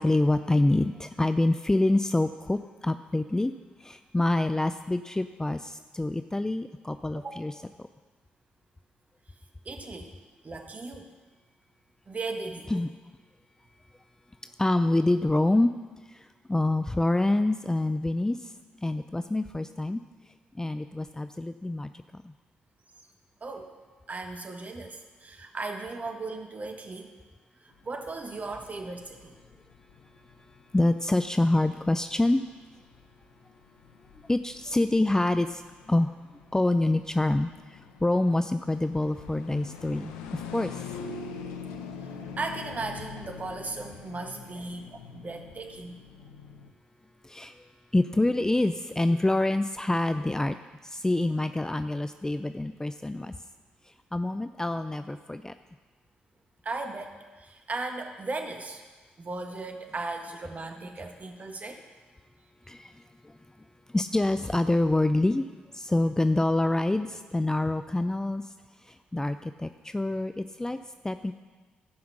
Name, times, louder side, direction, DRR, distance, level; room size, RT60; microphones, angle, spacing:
voice 1, 0.0-3.5 3.8-7.5 7.8-7.9 12.7-12.9 14.6-15.7 16.1-18.5 18.8-20.0 20.5-22.3 30.7-32.4 34.3-35.6 35.9-36.1 36.5-40.8 47.2-47.5 47.9-50.6 50.8-53.3 54.1-55.5 62.7-62.9 63.2-63.4 63.9-65.5 65.7-68.4 68.9-70.8 71.0-71.3, left 2 dB, 15° left, 10 dB, 0.5 m, -26 dB
voice 2, 9.6-10.1 10.4-11.1 12.1-12.9 23.4-23.7 24.1-27.1 27.6-29.3 42.4-46.0 56.6-58.8 59.2-61.8, right 3 dB, 35° right, 4 dB, 1.6 m, -37 dB
sound 1, 27.8-46.7, left 5 dB, 75° left, 0.8 m, -44 dB
14.5 x 5.8 x 6.5 m, 1.4 s
figure-of-eight pair, 40°, 4 cm